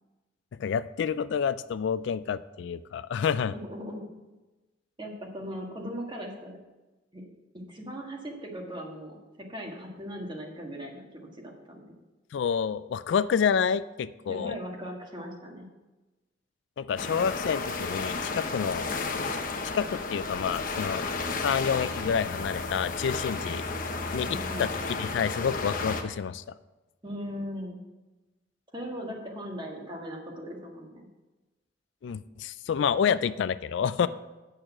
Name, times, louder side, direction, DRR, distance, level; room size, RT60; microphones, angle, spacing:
voice 1, 0.6-3.5 12.3-14.6 16.8-18.9 19.6-21.1 21.4-23.6 24.1-26.5 32.0-34.1, left 7 dB, 65° left, 15 dB, 0.3 m, -28 dB
voice 2, 3.4-4.0 5.0-6.6 7.1-7.2 7.5-12.0 14.3-15.7 24.2-24.7 27.0-27.8 28.7-31.1 34.0-34.1, equal, 25° right, 1 dB, 1.6 m, -39 dB
sound 1, 17.0-26.0, left 3 dB, 50° left, 0.9 m, -33 dB
8.8 x 6.5 x 5.9 m, 1.1 s
head